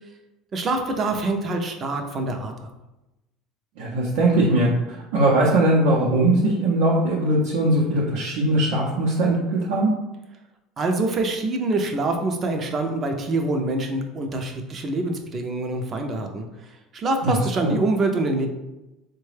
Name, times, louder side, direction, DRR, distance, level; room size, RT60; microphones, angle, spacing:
voice 1, 0.5-2.7 10.8-16.4 16.9-18.5, right 2 dB, 35° right, 4 dB, 0.5 m, -25 dB
voice 2, 3.8-9.9 17.2-17.4 17.6-17.8, right 1 dB, 80° right, -4 dB, 0.6 m, -20 dB
3.7 x 2.2 x 3.2 m, 1.0 s
supercardioid pair, 115°, 0 cm